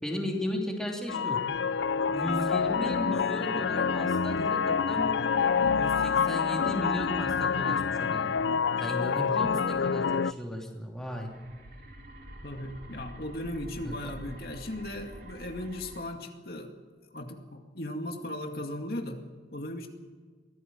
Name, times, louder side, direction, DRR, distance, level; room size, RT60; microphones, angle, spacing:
voice 1, 0.0-1.4 2.1-5.1 5.8-8.3 8.8-11.3 13.8-14.1, equal, 5° left, 0 dB, 3.0 m, -35 dB
sound 1, 1.1-10.3, left 6 dB, 90° left, 0.5 m, -27 dB
sound 2, 11.0-16.0, right 1 dB, 55° right, 3.8 m, -47 dB
voice 2, 12.4-16.7 17.1-19.2 19.5-19.9, left 1 dB, 55° left, 3 dB, 2.2 m, -37 dB
23.5 x 16.5 x 7.6 m, 1.5 s
head